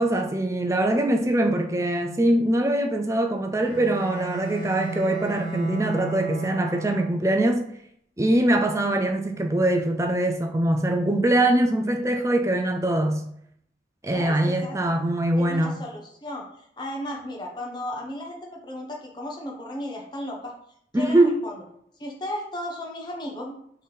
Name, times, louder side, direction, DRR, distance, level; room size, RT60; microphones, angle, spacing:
voice 1, 0.0-7.6 8.2-13.2 14.0-15.8 20.9-21.4, right 1 dB, 15° right, 0.4 m, -23 dB
Bowed string instrument, 3.6-7.4, right 3 dB, 65° left, 1.5 m, -34 dB
voice 2, 14.1-14.8 15.4-20.6 20.9-21.6 22.0-23.5, left 1 dB, 25° left, 0.8 m, -35 dB
4.1 x 3.9 x 3.3 m
head